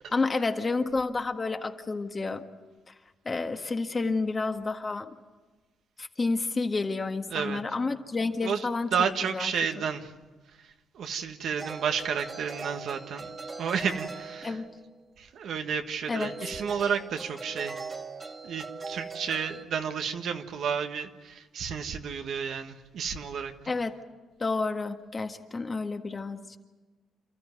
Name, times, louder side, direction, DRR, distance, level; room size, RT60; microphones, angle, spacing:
voice 1, 0.1-2.4 2.9-3.0 3.2-5.1 6.0-8.9 9.3-9.5 14.4-14.7 16.1-16.3 23.7-23.9 24.4-26.6, left 3 dB, 30° left, 5 dB, 1.7 m, -30 dB
voice 2, 7.3-7.6 8.4-10.1 10.5-14.6 15.2-17.8 18.4-23.5, right 7 dB, 70° right, 6 dB, 1.6 m, -31 dB
sound 1, 11.6-15.0 16.2-19.6, right 4 dB, 30° right, 2.0 m, -40 dB
28.5 x 13.5 x 9.6 m, 1.3 s
cardioid pair, 90°, 0 cm